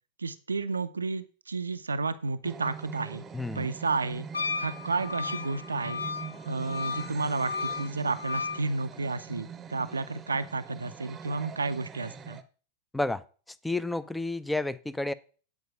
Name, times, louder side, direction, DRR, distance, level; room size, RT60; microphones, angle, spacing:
voice 1, 0.2-3.2 3.5-4.3 4.6-6.0 6.5-12.4, right 3 dB, 75° right, 11 dB, 0.5 m, -31 dB
sound 1, 2.4-12.4, right 6 dB, 20° right, 0.8 m, -43 dB
voice 2, 3.3-3.7 12.9-13.2 13.6-15.1, left 2 dB, 5° left, 18 dB, 0.5 m, -30 dB
Wind instrument woodwind instrument, 4.3-8.6, left 5 dB, 80° left, 0.4 m, -34 dB
9.3 x 4.6 x 6.7 m, 0.39 s
figure-of-eight pair, 90°, 0 cm